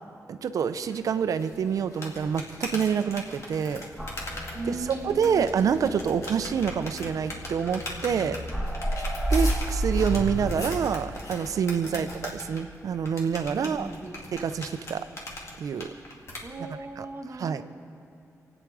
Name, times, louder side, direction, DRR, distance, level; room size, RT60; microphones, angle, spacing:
voice 1, 0.3-3.8 4.9-8.4 9.3-13.9 14.3-15.1 15.6-15.9 17.0-17.1 17.4-17.6, right 7 dB, 75° right, 11 dB, 0.6 m, -27 dB
sound 1, 0.6-11.7, left 1 dB, 85° left, 4.0 m, -46 dB
sound 2, 1.4-16.4, left 1 dB, 50° left, 2.4 m, -40 dB
sound 3, 4.0-10.5, right 1 dB, 15° left, 2.8 m, -31 dB
voice 2, 4.5-5.5 11.8-12.2 13.5-14.2 16.4-17.6, right 2 dB, 35° right, 4 dB, 1.2 m, -38 dB
26.5 x 9.1 x 4.8 m, 2.6 s
wide cardioid pair, 125°, 6 cm